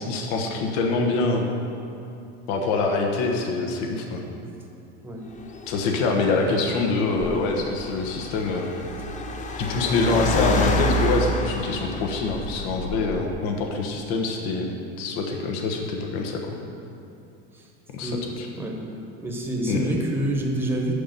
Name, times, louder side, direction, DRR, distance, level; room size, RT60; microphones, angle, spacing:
voice 1, 0.0-1.5 2.5-4.2 5.7-8.7 9.6-14.7 15.0-16.5 17.9-18.5 19.7-19.8, left 3 dB, 65° left, 2 dB, 1.2 m, -25 dB
Car, 5.3-13.3, left 1 dB, 20° left, 0.6 m, -28 dB
voice 2, 19.2-20.9, right 1 dB, 5° right, 0 dB, 1.1 m, -27 dB
6.7 x 5.6 x 6.7 m, 2.6 s
supercardioid pair, 115°, 34 cm